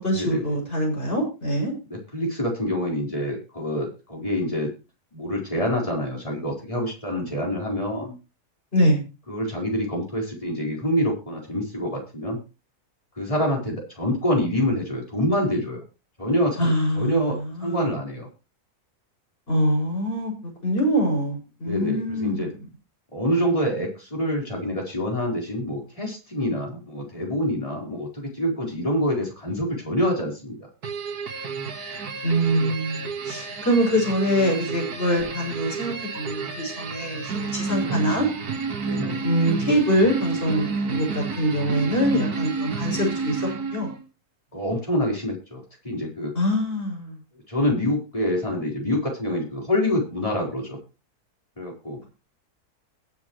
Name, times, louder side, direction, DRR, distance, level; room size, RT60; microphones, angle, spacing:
voice 1, 0.0-1.7 8.7-9.0 16.6-17.8 19.5-20.3 20.6-22.5 32.2-38.3 39.2-43.4 43.7-43.9 46.3-47.2, equal, 35° left, -1 dB, 6.7 m, -24 dB
voice 2, 1.9-4.7 5.1-8.2 9.3-12.4 13.2-15.8 16.2-18.3 21.6-22.5 23.1-30.6 37.7-38.1 38.8-39.2 44.5-46.3 47.5-50.8 51.6-52.0, equal, 20° left, -2 dB, 4.6 m, -26 dB
sound 1, 30.8-44.0, right 4 dB, 75° right, 2.2 m, -30 dB
21.0 x 7.1 x 3.2 m, 0.30 s
omnidirectional pair, 1.7 m